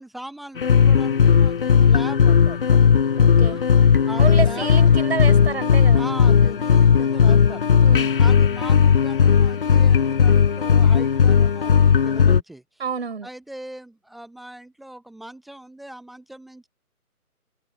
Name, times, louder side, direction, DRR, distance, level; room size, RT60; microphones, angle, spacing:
voice 1, 0.0-2.9 3.4-3.7 4.0-4.7 6.0-7.7 8.1-12.6 13.2-16.7, right 1 dB, ahead, 0.9 m, -39 dB
sound 1, 0.6-12.4, left 7 dB, 35° left, 6.8 m, -16 dB
voice 2, 3.2-3.6 4.2-6.0 7.8-8.1 12.8-13.3, right 5 dB, 45° right, 6.1 m, -29 dB
open air
figure-of-eight pair, 150°, 45 cm